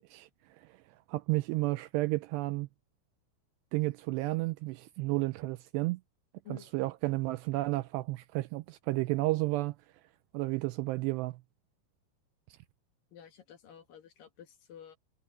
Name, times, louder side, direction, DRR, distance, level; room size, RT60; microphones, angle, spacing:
voice 1, 1.1-2.7 3.7-6.0 6.5-9.8 10.3-11.4, right 20 dB, 85° right, 2.5 m, -32 dB
voice 2, 13.1-15.0, left 9 dB, 60° left, 3.0 m, -51 dB
omnidirectional pair, 5.2 m